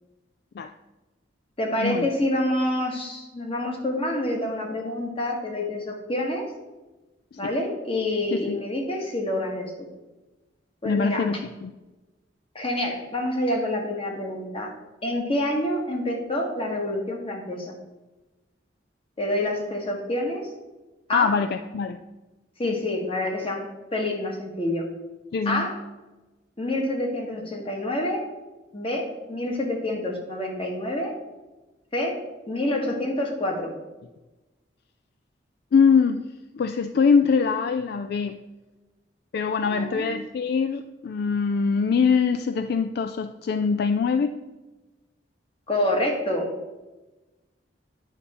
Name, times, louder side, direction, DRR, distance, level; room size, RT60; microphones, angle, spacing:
voice 1, 1.6-6.5 7.4-9.7 10.8-11.3 12.5-14.7 15.0-17.7 19.2-20.5 21.1-21.3 22.6-24.8 25.4-25.8 26.6-28.3 28.7-31.1 31.9-32.2 32.5-33.7 39.6-40.1 45.7-46.5, left 1 dB, 30° left, 1 dB, 1.4 m, -27 dB
voice 2, 10.8-11.7 21.1-22.0 22.6-22.8 25.3-25.7 35.7-36.3 36.5-38.4 39.3-44.4, left 5 dB, 60° left, 8 dB, 0.3 m, -23 dB
9.0 x 5.5 x 4.2 m, 1.1 s
head